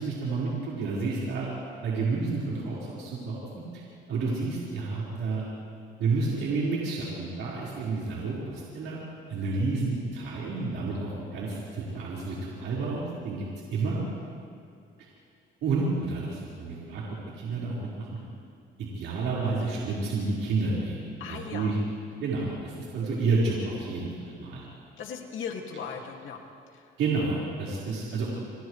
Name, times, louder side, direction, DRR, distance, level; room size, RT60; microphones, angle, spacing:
voice 1, 0.0-1.5 1.8-3.8 4.1-5.4 6.0-9.0 9.3-13.4 13.7-14.0 15.6-17.0 17.3-18.2 18.8-21.8 22.2-24.6 27.0-28.5, right 3 dB, 90° right, -7 dB, 4.9 m, -30 dB
voice 2, 21.2-21.8 25.0-26.4 26.7-26.8, left 6 dB, 80° left, 2 dB, 2.4 m, -37 dB
29.0 x 27.5 x 3.3 m, 2.4 s
cardioid pair, 90°, 20 cm